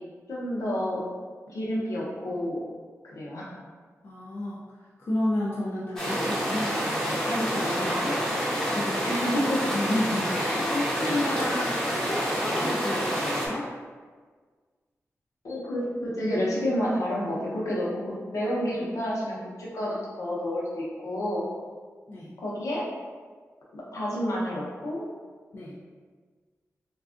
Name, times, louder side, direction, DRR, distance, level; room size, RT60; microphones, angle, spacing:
voice 1, 0.3-1.0 1.5-2.6 3.1-3.6 9.0-9.6 15.4-21.5 22.4-22.8 23.7-25.0, equal, 70° left, -5 dB, 0.7 m, -29 dB
voice 2, 4.0-4.6 5.0-9.2 9.6-13.7 22.1-22.3 25.5-25.8, left 1 dB, 45° left, -6 dB, 0.3 m, -31 dB
sound 1, 6.0-13.5, equal, 10° left, 0.6 m, -28 dB
3.4 x 2.3 x 2.4 m, 1.5 s
wide cardioid pair, 170°, 5 cm